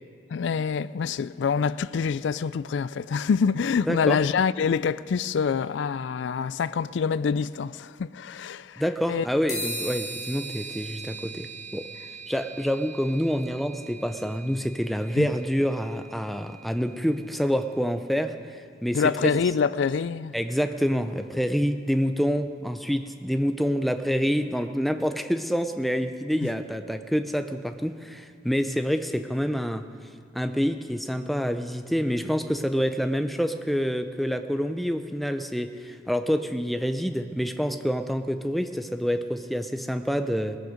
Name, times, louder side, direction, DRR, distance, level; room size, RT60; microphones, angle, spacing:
voice 1, 0.3-8.8 9.1-9.2 15.2-15.3 18.9-20.3 26.4-26.5, left 6 dB, 70° left, 0.3 m, -26 dB
voice 2, 3.9-4.2 8.8-11.9 12.3-19.3 20.3-29.8 30.3-40.6, equal, ahead, 0.5 m, -27 dB
sound 1, 9.5-17.1, right 1 dB, 20° left, 4.8 m, -39 dB
18.5 x 14.5 x 5.1 m
head